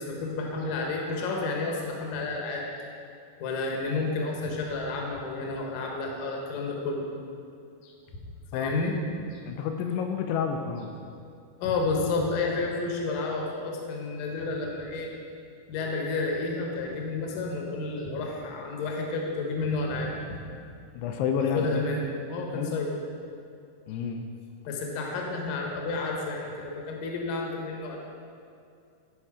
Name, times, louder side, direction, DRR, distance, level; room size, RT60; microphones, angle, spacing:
voice 1, 0.0-2.7 3.4-7.0 7.8-7.9 8.5-8.9 9.3-9.4 11.6-15.1 15.7-20.4 21.5-23.0 24.7-28.0, left 3 dB, 70° left, 0 dB, 2.2 m, -31 dB
voice 2, 9.5-10.9 20.9-21.9 22.5-22.8 23.9-24.2, left 6 dB, 85° left, 5 dB, 2.6 m, -29 dB
12.5 x 4.4 x 4.9 m, 2.4 s
omnidirectional pair, 4.8 m